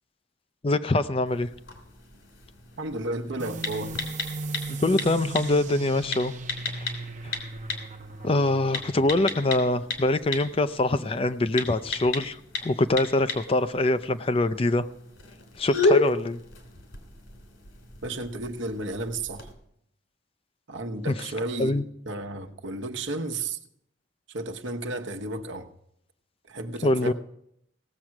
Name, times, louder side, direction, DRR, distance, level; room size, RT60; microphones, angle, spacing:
voice 1, 0.6-1.5 4.7-6.3 6.8-6.9 7.2-7.4 8.2-12.4 12.6-14.9 15.6-16.4 21.1-21.2 21.6-21.8 26.8-27.1, left 2 dB, 30° left, 0.5 m, -24 dB
sound 1, 1.3-19.5, left 3 dB, 75° left, 3.0 m, -34 dB
voice 2, 2.8-4.0 18.0-19.5 20.7-23.6 24.3-25.7 26.5-27.1, right 2 dB, 75° right, 1.1 m, -33 dB
sound 2, 3.4-10.6, right 3 dB, 40° right, 0.8 m, -38 dB
17.5 x 7.6 x 5.9 m
head